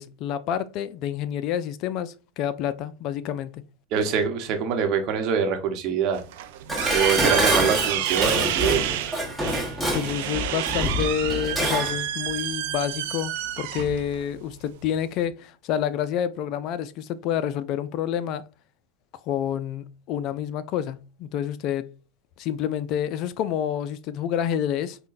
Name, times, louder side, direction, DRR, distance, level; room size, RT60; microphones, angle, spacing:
voice 1, 0.0-3.6 9.9-18.4 19.3-21.9 22.4-25.0, left 9 dB, 55° left, 0.3 m, -28 dB
voice 2, 3.9-6.2 6.9-9.0, right 6 dB, 55° right, 0.8 m, -24 dB
sound 1, 6.1-15.2, right 12 dB, 70° right, 0.4 m, -29 dB
Dishes pots and pans, 6.7-12.0 12.3-12.4, equal, ahead, 1.1 m, -26 dB
5.5 x 2.2 x 2.5 m
hypercardioid pair, 100°, 0 cm